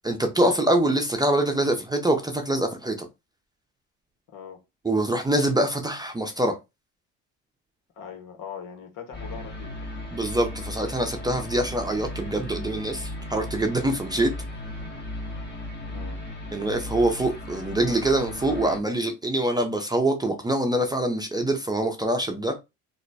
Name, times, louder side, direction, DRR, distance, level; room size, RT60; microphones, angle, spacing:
voice 1, 0.0-3.1 4.8-6.6 10.1-14.3 16.5-22.5, right 1 dB, 10° right, 0.6 m, -24 dB
voice 2, 8.0-9.9 15.9-16.2, left 7 dB, 60° left, 1.2 m, -41 dB
sound 1, 9.1-18.8, left 1 dB, 30° left, 1.2 m, -36 dB
3.0 x 2.1 x 4.0 m
cardioid pair, 100°, 36 cm